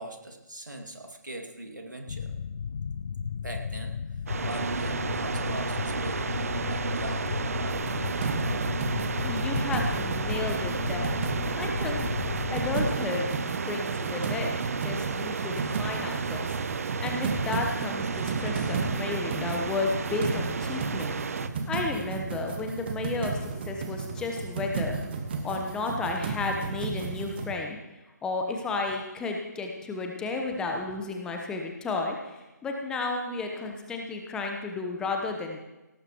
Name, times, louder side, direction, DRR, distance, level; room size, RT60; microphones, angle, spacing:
voice 1, 0.0-2.3 3.3-8.5 15.3-15.5 28.6-28.7, right 1 dB, 85° right, 2 dB, 2.4 m, -42 dB
sound 1, 2.1-13.0, left 6 dB, 50° left, 0.5 m, -34 dB
sound 2, 4.3-21.5, right 5 dB, 55° right, 0.8 m, -33 dB
sound 3, 7.7-27.5, right 4 dB, 35° right, 1.5 m, -34 dB
voice 2, 9.2-11.1 11.6-12.0 12.5-14.5 14.8-16.4 17.0-21.1 21.7-25.0 25.4-27.8 28.2-35.6, left 3 dB, 10° left, 2 dB, 1.0 m, -32 dB
18.0 x 16.0 x 3.1 m, 1.0 s
figure-of-eight pair, 145°, 10 cm